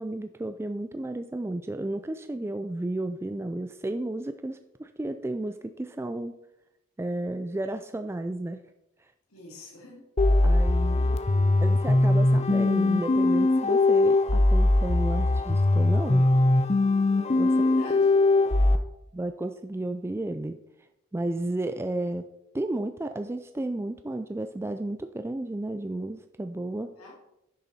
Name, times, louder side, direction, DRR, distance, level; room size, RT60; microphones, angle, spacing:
voice 1, 0.0-6.3 7.0-8.6 10.4-11.2 11.6-16.2 17.4-17.6 19.1-20.6 21.1-22.2 22.5-26.9, right 1 dB, 10° right, 8 dB, 0.3 m, -32 dB
voice 2, 9.3-10.0 17.5-18.2 27.0-27.1, left 1 dB, 85° left, -2 dB, 2.6 m, -46 dB
sound 1, 10.2-18.8, left 2 dB, 30° left, 0.6 m, -21 dB
10.5 x 6.5 x 4.2 m, 0.87 s
head